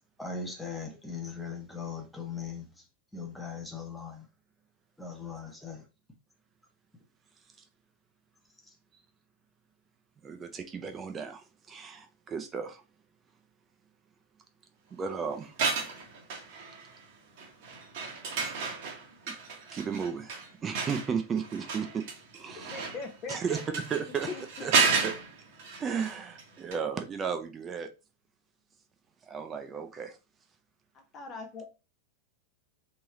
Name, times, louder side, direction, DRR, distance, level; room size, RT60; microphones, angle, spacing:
voice 1, 0.2-2.9 3.1-4.3 5.0-5.9 8.6-8.7, left 5 dB, ahead, 0.9 m, -39 dB
voice 2, 10.2-12.8 14.9-15.5 19.3-19.4 19.7-22.0 22.3-22.7 23.3-23.6 23.9-24.3 24.6-24.7 25.0-25.1 25.8-27.9 29.3-30.2, right 6 dB, 20° right, 0.5 m, -34 dB
sound 1, 15.4-17.0 17.4-26.4 26.7-26.8, right 5 dB, 50° right, 1.0 m, -32 dB
voice 3, 22.7-23.6 24.3-24.7 30.9-31.7, left 4 dB, 30° left, 0.6 m, -40 dB
3.6 x 3.1 x 3.0 m
figure-of-eight pair, 90°, 0 cm